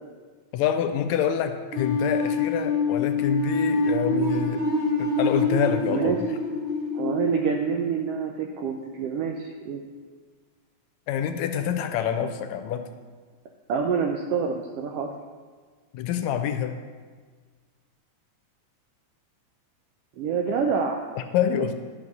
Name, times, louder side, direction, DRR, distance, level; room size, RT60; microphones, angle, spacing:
voice 1, 0.5-4.6 5.0-6.2 11.1-12.9 15.9-16.7 21.3-21.7, left 9 dB, 80° left, 8 dB, 1.8 m, -26 dB
sound 1, 1.7-8.6, left 2 dB, 55° right, 2.5 m, -26 dB
voice 2, 5.9-6.2 6.9-9.8 13.7-15.1 20.2-21.1, right 6 dB, 85° right, 3 dB, 1.3 m, -27 dB
12.0 x 6.4 x 4.1 m, 1.5 s
omnidirectional pair, 3.4 m